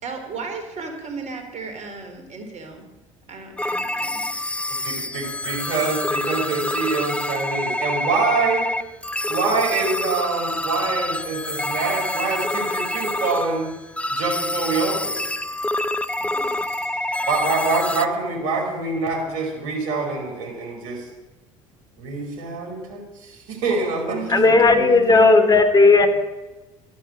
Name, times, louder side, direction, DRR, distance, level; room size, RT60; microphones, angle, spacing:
voice 1, 0.0-2.8 3.3-4.2 16.2-17.0 24.1-25.6, right 3 dB, 45° right, 5 dB, 4.4 m, -34 dB
sound 1, 3.6-18.1, left 1 dB, 5° left, 0.7 m, -26 dB
voice 2, 4.8-8.7 9.3-13.7 14.1-15.2 17.3-21.1 22.0-24.5, right 4 dB, 60° right, 0 dB, 5.0 m, -25 dB
voice 3, 24.3-26.1, left 3 dB, 25° left, 6 dB, 2.7 m, -14 dB
12.5 x 11.5 x 9.0 m, 1.1 s
figure-of-eight pair, 65°, 17 cm